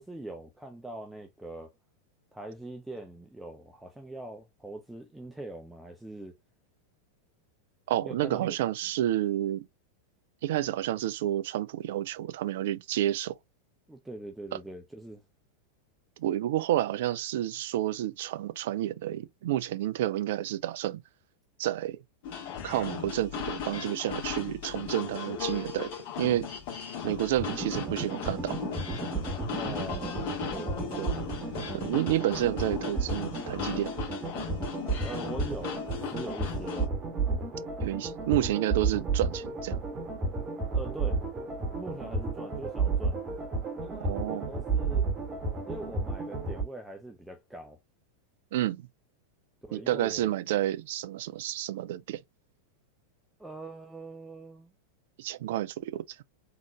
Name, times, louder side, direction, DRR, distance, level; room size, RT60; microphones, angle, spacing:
voice 1, 0.0-1.7 2.3-6.4 8.0-8.6 13.9-15.2 29.5-31.1 35.0-36.9 40.7-41.2 41.7-43.2 43.8-45.1 45.7-47.8 49.7-50.4 53.4-54.7, right 2 dB, 5° right, 0.6 m, -42 dB
voice 2, 7.9-9.7 10.4-13.3 16.2-21.0 21.6-22.0 22.6-25.9 26.2-26.5 27.0-28.6 31.0-31.2 31.7-33.9 37.8-39.8 44.0-44.5 48.5-48.9 49.7-52.2 55.2-56.2, right 13 dB, 55° right, 0.3 m, -30 dB
sound 1, 22.2-36.9, left 8 dB, 50° left, 1.5 m, -37 dB
sound 2, 27.4-46.6, right 4 dB, 25° right, 0.9 m, -32 dB
3.7 x 2.8 x 2.3 m
figure-of-eight pair, 90°, 0 cm